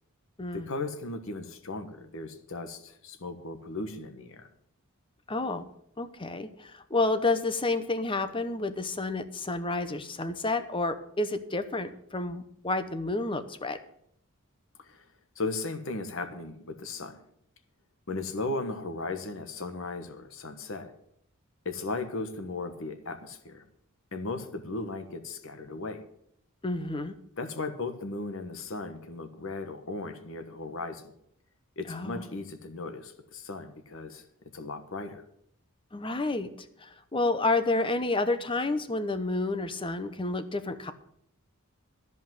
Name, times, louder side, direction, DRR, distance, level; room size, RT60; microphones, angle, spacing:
voice 1, 0.5-4.5 14.8-15.1 15.3-17.2 18.1-20.9 21.6-23.6 24.1-26.0 27.4-31.1 31.8-34.2 34.5-35.2, left 3 dB, 60° left, 8 dB, 1.3 m, -36 dB
voice 2, 5.3-5.6 6.0-13.8 26.6-27.1 31.9-32.2 35.9-36.5 36.8-40.9, left 2 dB, 25° left, 10 dB, 0.8 m, -30 dB
13.5 x 5.4 x 9.1 m, 0.73 s
head